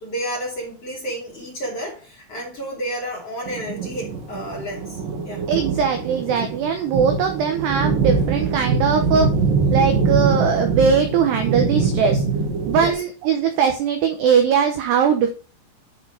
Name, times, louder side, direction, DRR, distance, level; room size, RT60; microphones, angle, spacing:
voice 1, 0.0-5.0 5.2-5.5 12.8-13.0, equal, 35° left, -2 dB, 2.9 m, -31 dB
sound 1, 3.5-12.9, right 4 dB, 65° right, 2.2 m, -23 dB
voice 2, 5.5-9.3 9.7-12.2 12.7-15.3, right 6 dB, 85° right, 6 dB, 2.4 m, -20 dB
11.0 x 4.4 x 4.8 m, 0.37 s
omnidirectional pair, 5.9 m